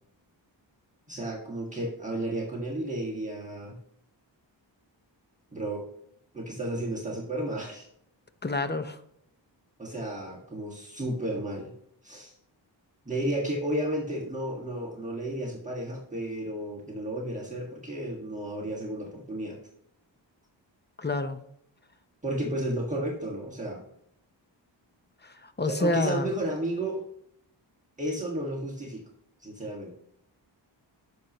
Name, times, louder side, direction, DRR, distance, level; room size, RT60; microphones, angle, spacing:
voice 1, 1.1-3.8 5.5-5.8 6.3-7.9 9.8-11.7 12.0-12.3 13.0-19.6 22.2-23.8 25.6-27.0 28.0-29.0 29.4-29.9, right 1 dB, 15° right, -3 dB, 1.7 m, -32 dB
voice 2, 8.4-9.0 21.0-21.4 25.2-26.3, left 2 dB, 25° left, 9 dB, 0.7 m, -28 dB
11.0 x 6.6 x 3.0 m, 0.73 s
wide cardioid pair, 125°, 46 cm